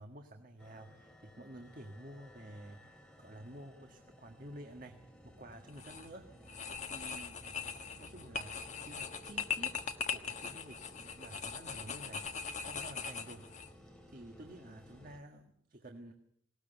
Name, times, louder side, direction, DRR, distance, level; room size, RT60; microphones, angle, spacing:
voice 1, 0.0-7.5 8.0-8.5 8.8-9.8 10.1-13.5 14.1-16.1, right 1 dB, 45° right, 4 dB, 1.6 m, -51 dB
sound 1, 0.6-15.2, equal, 5° left, 2.9 m, -56 dB
sound 2, 5.7-6.1 6.5-13.7, left 6 dB, 40° left, 1.3 m, -40 dB
19.5 x 18.0 x 8.1 m, 0.70 s
head